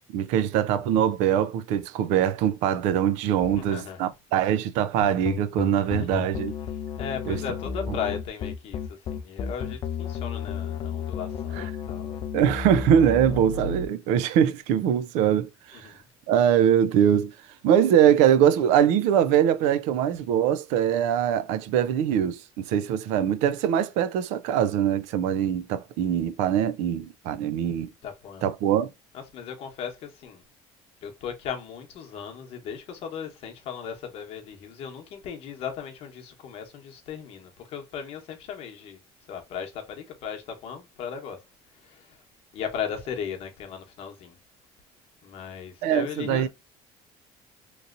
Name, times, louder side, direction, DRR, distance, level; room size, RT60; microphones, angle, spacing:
voice 1, 0.1-6.5 7.3-7.4 12.3-15.9 16.3-17.4 17.6-27.9 28.4-28.9 45.8-46.5, right 9 dB, 90° right, 0.4 m, -22 dB
voice 2, 3.4-4.1 5.8-6.2 6.7-12.3 15.7-16.0 28.0-28.5 29.1-30.4 31.0-39.0 39.3-41.5 41.7-42.2 42.5-44.4 45.2-46.5, left 7 dB, 55° left, 0.9 m, -37 dB
sound 1, 5.0-13.9, left 7 dB, 40° left, 0.4 m, -32 dB
3.0 x 2.7 x 2.4 m
cardioid pair, 150°, 12 cm